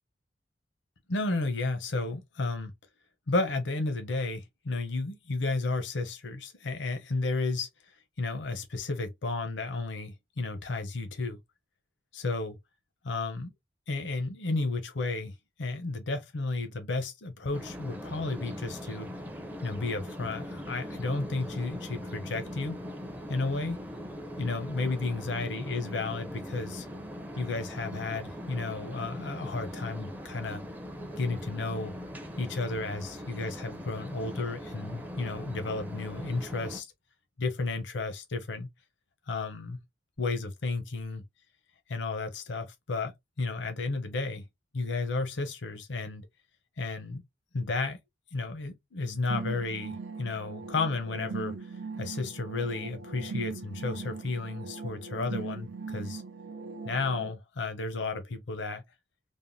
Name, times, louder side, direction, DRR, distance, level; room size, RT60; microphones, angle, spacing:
voice 1, 1.1-2.7 3.3-11.4 12.1-12.6 13.0-13.5 13.9-19.1 19.6-22.8 23.3-23.8 24.4-26.9 27.4-30.6 31.2-31.9 32.4-36.9 37.4-38.7 39.3-39.8 40.2-41.2 41.9-43.1 43.4-44.5 44.7-46.3 46.8-47.2 47.5-48.0 48.3-56.2 56.8-58.8, left 3 dB, 80° left, 0.7 m, -33 dB
sound 1, 17.5-36.8, equal, 10° right, 0.4 m, -41 dB
sound 2, 49.3-57.3, right 4 dB, 90° right, 0.6 m, -39 dB
3.4 x 2.1 x 2.6 m
head